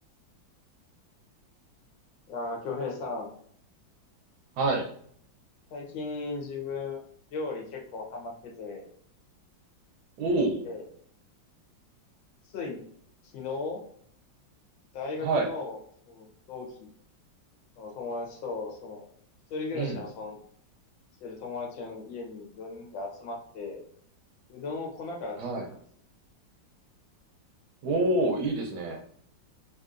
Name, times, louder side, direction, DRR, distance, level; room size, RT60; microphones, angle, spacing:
voice 1, 2.3-3.3 5.7-7.0 7.3-8.9 10.6-10.8 12.5-12.8 13.3-13.8 14.9-15.8 16.1-16.9 17.8-19.0 19.5-20.4 21.2-23.8 24.5-25.4 25.7-25.8, left 3 dB, 80° left, 0 dB, 1.6 m, -36 dB
voice 2, 4.6-4.9 10.2-10.6 15.2-15.5 19.7-20.0 25.4-25.7 27.8-29.0, right 2 dB, 70° right, 2 dB, 1.0 m, -27 dB
3.6 x 2.6 x 2.4 m, 0.62 s
omnidirectional pair, 2.1 m